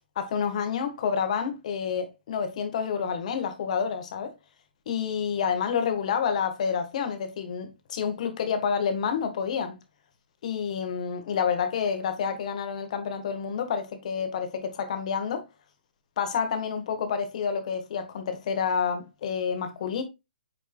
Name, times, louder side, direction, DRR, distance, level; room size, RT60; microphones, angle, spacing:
voice 1, 0.2-4.3 4.9-9.8 10.4-15.5 16.2-20.0, left 7 dB, 45° left, 1.8 m, -29 dB
8.5 x 5.4 x 2.4 m
figure-of-eight pair, 130°, 5 cm